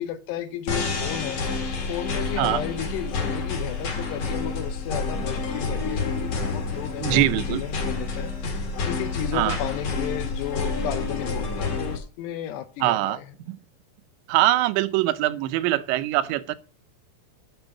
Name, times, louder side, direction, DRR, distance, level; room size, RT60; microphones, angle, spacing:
voice 1, 0.0-1.4 1.8-13.3, left 11 dB, 80° left, 2.9 m, -34 dB
sound 1, 0.7-12.0, left 3 dB, 50° left, 2.2 m, -29 dB
voice 2, 7.0-7.6 9.3-9.6 12.8-13.2 13.5-13.6 14.3-16.6, right 15 dB, 90° right, 3.0 m, -23 dB
7.3 x 7.0 x 8.1 m
omnidirectional pair, 5.0 m